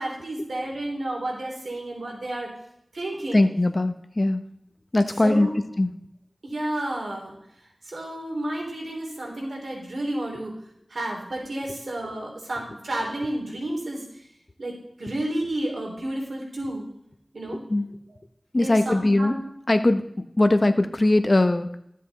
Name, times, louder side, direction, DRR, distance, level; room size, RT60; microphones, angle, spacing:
voice 1, 0.0-2.5 2.9-3.4 5.2-5.5 6.4-7.3 7.8-10.5 10.9-14.2 14.6-14.7 15.0-16.9 17.3-17.6 18.6-19.4, right 1 dB, 90° right, -1 dB, 3.3 m, -31 dB
voice 2, 3.3-4.4 4.9-5.5 5.8-5.9 17.7-17.9 18.5-19.3 19.7-21.8, left 2 dB, 45° left, 8 dB, 0.8 m, -21 dB
13.5 x 7.5 x 4.2 m, 0.75 s
wide cardioid pair, 60°, 0 cm